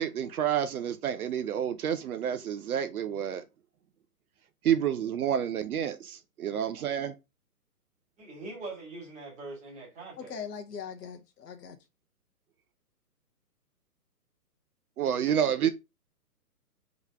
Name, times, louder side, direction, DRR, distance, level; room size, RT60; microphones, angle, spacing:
voice 1, 0.0-3.4 4.6-7.2 15.0-15.7, right 9 dB, 65° right, 0.6 m, -29 dB
voice 2, 8.2-10.4, right 3 dB, 15° right, 1.6 m, -42 dB
voice 3, 10.2-11.8, left 7 dB, 80° left, 0.9 m, -40 dB
4.0 x 3.0 x 3.4 m
hypercardioid pair, 145°, 47 cm